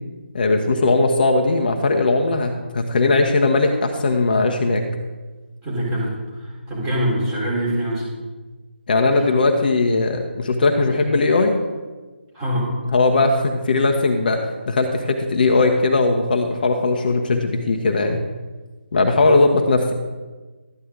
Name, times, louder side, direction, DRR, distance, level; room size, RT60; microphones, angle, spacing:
voice 1, 0.3-4.8 8.9-11.6 12.9-14.4 14.7-18.2 18.9-19.9, left 3 dB, 45° left, 3 dB, 1.0 m, -18 dB
voice 2, 5.6-8.1 9.1-9.2 12.3-12.8, equal, 15° right, -6 dB, 3.8 m, -24 dB
12.5 x 9.5 x 3.9 m, 1.3 s
figure-of-eight pair, 155°, 7 cm